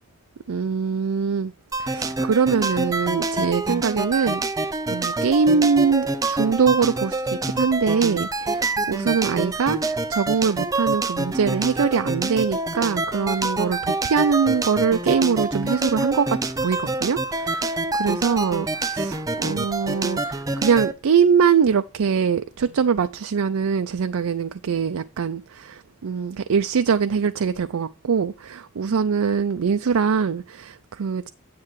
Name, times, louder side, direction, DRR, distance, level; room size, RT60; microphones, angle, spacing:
voice 1, 0.5-1.5 1.8-31.3, right 6 dB, 80° right, 0.5 m, -23 dB
sound 1, 1.7-20.9, right 2 dB, 15° right, 0.5 m, -26 dB
9.6 x 7.6 x 3.1 m
head